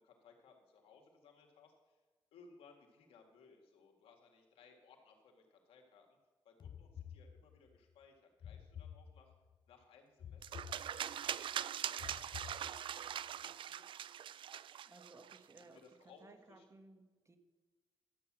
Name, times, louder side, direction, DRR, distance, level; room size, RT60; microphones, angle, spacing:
voice 1, 0.0-2.0 2.3-6.2 6.4-9.3 9.7-11.4 11.7-13.8 15.6-16.2 16.5-16.7, left 5 dB, 90° left, 2 dB, 2.0 m, -64 dB
sound 1, 6.6-7.8 8.4-9.6 10.2-11.4 12.0-13.1, left 8 dB, 55° left, 0.4 m, -52 dB
sound 2, 10.4-15.6, right 10 dB, 65° right, 0.4 m, -42 dB
voice 2, 14.8-17.4, right 2 dB, 30° right, 7 dB, 1.5 m, -60 dB
12.5 x 8.5 x 6.2 m, 1.3 s
cardioid pair, 70°, 9 cm